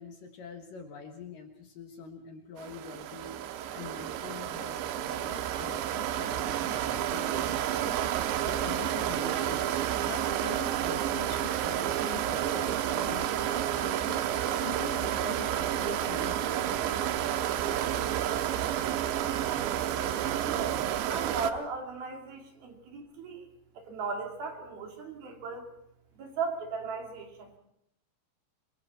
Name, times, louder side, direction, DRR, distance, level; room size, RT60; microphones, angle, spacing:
voice 1, 0.0-3.4 3.7-9.7 10.0-17.4, left 5 dB, 60° left, 4 dB, 2.7 m, -44 dB
sound 1, 2.6-21.5, right 11 dB, 85° right, 3.2 m, -30 dB
voice 2, 20.4-23.5 23.7-25.7 26.2-27.6, right 4 dB, 60° right, 2 dB, 4.4 m, -37 dB
27.0 x 22.5 x 4.3 m, 0.78 s
omnidirectional pair, 5.1 m